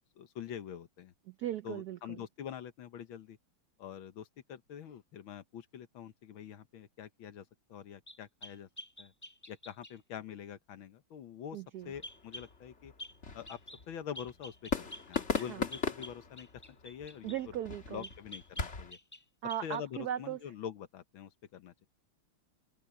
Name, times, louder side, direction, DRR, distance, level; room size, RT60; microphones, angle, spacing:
voice 1, 0.2-1.1 1.6-3.4 3.8-8.7 9.0-9.1 9.5-12.9 13.3-13.6 13.9-17.5 17.9-19.0 19.6-21.9, left 9 dB, 70° left, 1.8 m, -45 dB
voice 2, 1.3-2.2 11.5-11.9 15.3-15.6 17.2-18.1 19.4-20.4, right 11 dB, 75° right, 0.9 m, -38 dB
sound 1, 8.1-10.0 12.0-12.5 13.0-13.2 13.5-13.8 14.1-17.4 18.0-19.2 19.5-19.8, left 1 dB, 10° left, 1.4 m, -48 dB
sound 2, 11.8-18.9, left 5 dB, 35° left, 1.8 m, -40 dB
omnidirectional pair, 2.4 m